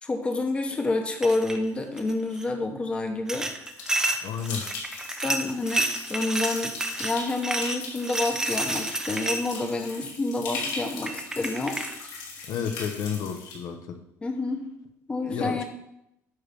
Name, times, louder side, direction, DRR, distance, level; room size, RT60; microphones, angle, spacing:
voice 1, 0.0-3.5 5.2-6.7 7.0-11.8 14.2-14.7 15.1-15.6, left 2 dB, 20° left, 4 dB, 1.0 m, -28 dB
sound 1, 1.2-1.6 2.0-2.4 3.3-9.6 10.7-10.8 11.1-11.9, right 1 dB, 10° right, 0.6 m, -30 dB
sound 2, 3.7-13.6, left 4 dB, 90° left, 2.6 m, -39 dB
voice 2, 4.2-4.7 12.5-14.0 15.3-15.6, left 7 dB, 65° left, 6 dB, 0.9 m, -31 dB
9.2 x 3.5 x 6.8 m, 0.79 s
cardioid pair, 155°, 6 cm